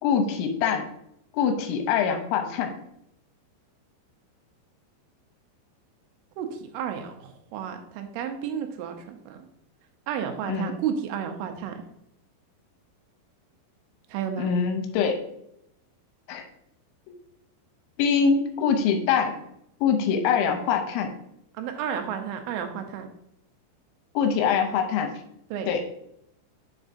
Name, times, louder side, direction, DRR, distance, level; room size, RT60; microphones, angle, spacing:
voice 1, 0.0-0.9 1.3-2.7 10.5-10.7 14.4-15.2 16.3-16.4 18.0-19.4 19.8-21.1 24.1-25.1 25.7-25.8, left 6 dB, 80° left, 5 dB, 3.0 m, -24 dB
voice 2, 6.4-9.4 10.1-11.7 14.1-14.5 21.5-23.1 25.5-25.7, right 8 dB, 85° right, 6 dB, 3.3 m, -32 dB
7.3 x 6.3 x 2.6 m, 0.77 s
omnidirectional pair, 5.5 m